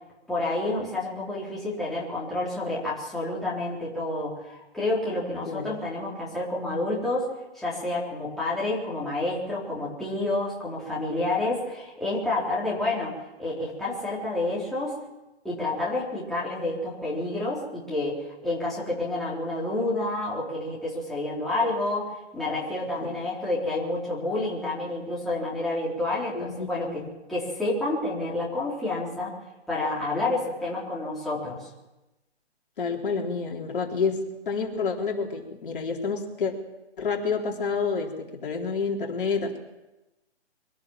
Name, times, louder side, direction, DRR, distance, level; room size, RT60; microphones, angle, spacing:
voice 1, 0.3-7.3 7.5-15.0 15.4-27.0 27.3-29.3 29.7-31.7, left 2 dB, ahead, -8 dB, 3.9 m, -29 dB
voice 2, 26.3-27.1 32.8-36.5 37.0-39.6, left 5 dB, 50° left, 0 dB, 3.6 m, -29 dB
24.0 x 17.5 x 7.5 m, 1.0 s
hypercardioid pair, 155°, 33 cm